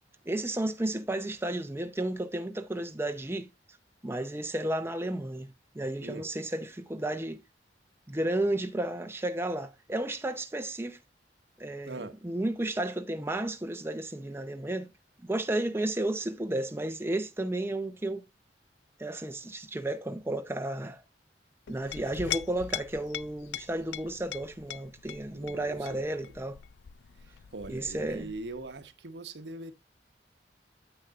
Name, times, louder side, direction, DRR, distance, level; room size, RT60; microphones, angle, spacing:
voice 1, 0.3-3.5 4.0-5.5 5.7-7.4 8.1-11.0 11.6-14.9 15.2-18.2 19.0-21.0 21.7-26.6 27.7-28.3, right 1 dB, 15° right, 0.7 m, -32 dB
voice 2, 11.9-12.2 25.3-26.3 27.2-29.7, right 2 dB, 80° right, 1.1 m, -42 dB
Chink clink, 21.7-28.8, left 11 dB, 75° left, 0.4 m, -41 dB
9.2 x 8.1 x 2.4 m
head